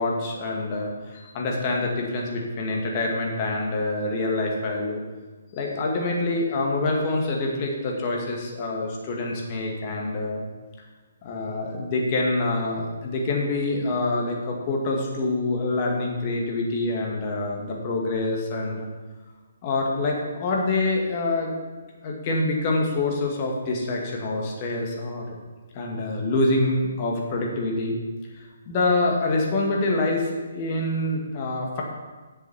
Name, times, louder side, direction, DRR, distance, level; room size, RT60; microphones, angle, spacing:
voice 1, 0.0-5.0 5.5-10.4 11.2-18.9 19.6-21.5 22.0-25.2 25.7-28.0 28.4-31.8, left 2 dB, 35° left, -1 dB, 2.1 m, -26 dB
7.8 x 7.1 x 7.2 m, 1.3 s
figure-of-eight pair, 135°, 0 cm